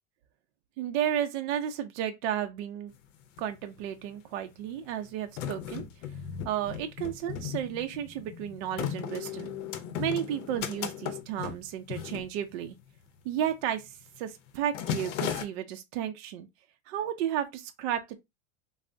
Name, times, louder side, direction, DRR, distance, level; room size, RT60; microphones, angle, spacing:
voice 1, 0.8-2.9 3.4-5.8 6.4-9.5 10.0-12.8 13.2-16.5 16.9-18.2, right 10 dB, 60° right, 0.5 m, -33 dB
sound 1, 2.9-3.0 3.2-4.0 4.7-13.0 13.3-13.5 13.9-14.2 14.5-15.5, left 9 dB, 70° left, 0.6 m, -36 dB
3.2 x 2.0 x 2.6 m
supercardioid pair, 135°, 38 cm